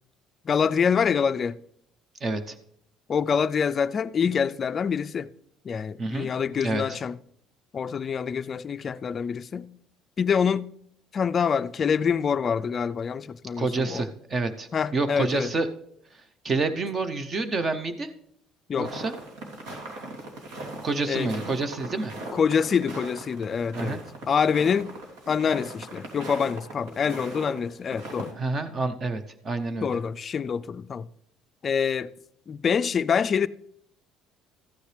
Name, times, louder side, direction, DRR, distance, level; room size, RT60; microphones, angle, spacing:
voice 1, 0.5-1.6 3.1-5.3 5.6-7.2 7.7-9.7 10.2-10.7 11.1-14.1 14.7-15.5 18.7-18.9 21.1-21.3 22.3-24.0 24.3-24.9 25.3-28.4 29.8-31.1 31.6-32.1 32.5-33.5, left 6 dB, 30° left, 0.3 m, -26 dB
voice 2, 2.2-2.6 6.0-6.3 6.6-6.8 13.6-15.7 16.4-18.1 18.8-19.1 20.8-22.1 23.7-24.0 28.4-30.0, right 3 dB, 30° right, 0.7 m, -28 dB
sound 1, 18.8-27.6 27.8-28.3, right 2 dB, 85° right, 2.8 m, -39 dB
14.0 x 9.6 x 3.3 m
cardioid pair, 140°, 0 cm